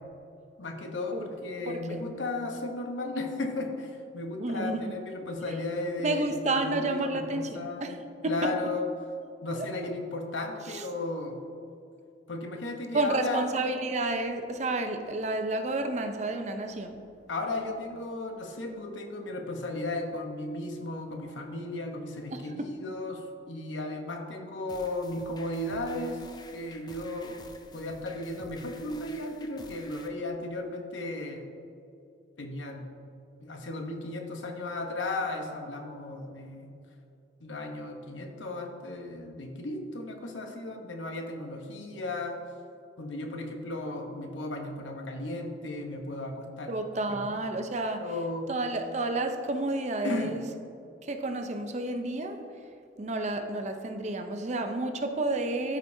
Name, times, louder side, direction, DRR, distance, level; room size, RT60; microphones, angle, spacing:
voice 1, 0.6-8.0 8.2-8.9 9.4-11.4 12.3-13.4 17.3-26.2 26.5-27.4 27.7-31.5 32.4-32.9 33.4-36.7 37.4-42.4 43.0-46.7 47.1-47.3 48.0-48.5 50.0-50.4, left 2 dB, 90° left, 3 dB, 0.9 m, -35 dB
voice 2, 1.7-2.0 4.4-4.9 6.0-8.0 8.2-8.5 9.5-9.7 10.7-10.8 12.9-17.0 22.3-22.4 46.7-48.1 48.5-50.4 51.0-52.4 53.0-55.8, right 2 dB, 40° right, 6 dB, 0.6 m, -30 dB
sound 1, 24.7-30.1, left 3 dB, 20° left, 0.4 m, -51 dB
13.0 x 5.1 x 2.7 m, 2.6 s
head